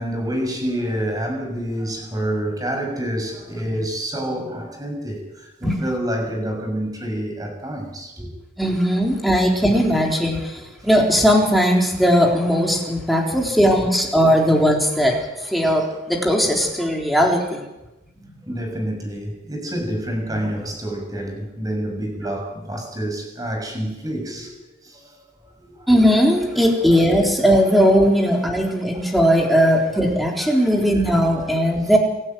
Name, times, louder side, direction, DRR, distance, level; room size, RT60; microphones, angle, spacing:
voice 1, 0.0-8.3 8.9-9.0 9.6-9.7 13.2-13.3 14.4-14.5 15.9-16.0 18.4-24.5 24.8-25.9 26.8-27.0 28.2-28.3 28.9-29.1 29.5-29.9 30.2-31.1 31.8-31.9, equal, 20° right, 3 dB, 6.5 m, -28 dB
voice 2, 8.6-17.6 25.9-32.0, equal, ahead, -1 dB, 4.0 m, -18 dB
27.5 x 12.5 x 9.3 m, 0.97 s
head